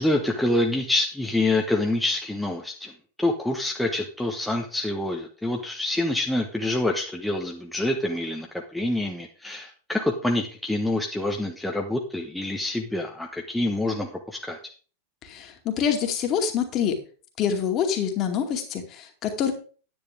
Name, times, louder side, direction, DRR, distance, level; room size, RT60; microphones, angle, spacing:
voice 1, 0.0-2.9 3.2-14.6, left 1 dB, 5° left, 1 dB, 1.2 m, -26 dB
voice 2, 15.2-16.9 17.4-19.5, left 8 dB, 35° left, 4 dB, 2.4 m, -26 dB
10.0 x 10.0 x 3.6 m, 0.38 s
figure-of-eight pair, 90°, 0 cm